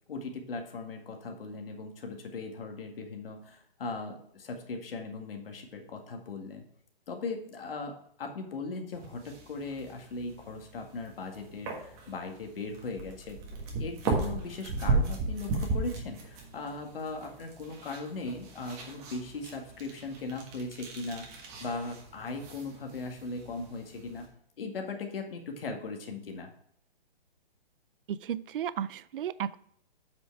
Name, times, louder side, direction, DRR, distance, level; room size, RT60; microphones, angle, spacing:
voice 1, 0.1-6.7 7.1-13.4 13.8-24.3 24.6-26.5, left 3 dB, 65° left, 3 dB, 2.1 m, -39 dB
sound 1, 8.9-24.2, right 3 dB, 20° right, 1.5 m, -36 dB
voice 2, 28.1-29.6, right 9 dB, 60° right, 17 dB, 0.5 m, -34 dB
8.0 x 6.2 x 4.7 m, 0.68 s
hypercardioid pair, 165°, 30 cm